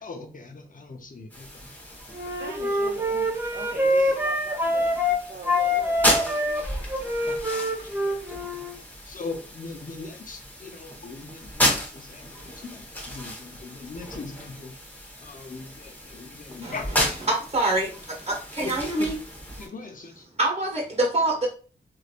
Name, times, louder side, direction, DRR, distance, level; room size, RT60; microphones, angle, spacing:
voice 1, 0.0-1.7 3.9-4.2 7.3-8.2 9.1-14.8 15.2-17.2 18.6-19.1 19.6-20.2, left 3 dB, 50° left, 0.7 m, -40 dB
sound 1, 1.3-19.7, left 1 dB, 10° left, 1.3 m, -33 dB
Wind instrument woodwind instrument, 2.1-5.2 5.4-8.8, left 1 dB, 10° right, 0.8 m, -25 dB
voice 2, 2.4-6.7, right 4 dB, 60° right, 0.7 m, -41 dB
voice 3, 17.5-17.9 18.3-19.1 20.4-21.5, right 2 dB, 35° right, 1.2 m, -25 dB
3.1 x 2.7 x 2.5 m
cardioid pair, 55°, 18 cm